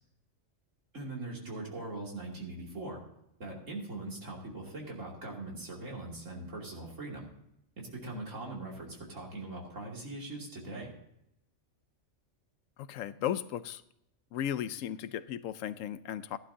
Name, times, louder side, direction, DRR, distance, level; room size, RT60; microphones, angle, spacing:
voice 1, 0.9-3.0 3.4-7.3 7.8-10.9, right 2 dB, 75° right, -2 dB, 3.1 m, -41 dB
voice 2, 12.8-13.8 14.3-16.4, left 10 dB, 85° left, 14 dB, 1.0 m, -35 dB
15.0 x 11.5 x 2.7 m, 0.81 s
omnidirectional pair, 1.3 m